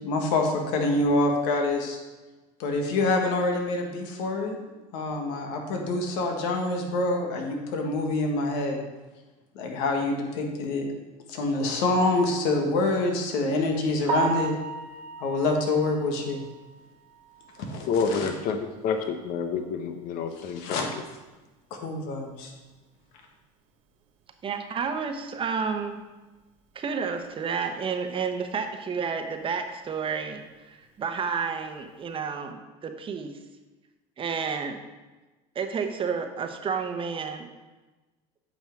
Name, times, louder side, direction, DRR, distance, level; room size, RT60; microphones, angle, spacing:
voice 1, 0.0-2.0 2.6-4.6 4.9-8.8 9.5-10.8 11.3-14.5 15.2-16.4 17.6-18.3 20.4-20.9 21.7-22.5, left 2 dB, 75° left, 2 dB, 1.6 m, -26 dB
Piano, 14.1-18.0 18.4-18.5 19.0-19.1 19.5-19.6 22.7-22.8 31.2-31.5, right 5 dB, 75° right, 1.3 m, -34 dB
voice 2, 17.9-18.6 18.8-20.9, left 5 dB, 60° left, 7 dB, 0.9 m, -28 dB
voice 3, 24.4-26.0 26.7-30.4 30.7-33.3 34.2-34.8 35.5-37.5, right 6 dB, 35° right, 6 dB, 1.0 m, -30 dB
8.5 x 5.6 x 4.6 m, 1.2 s
supercardioid pair, 100°, 16 cm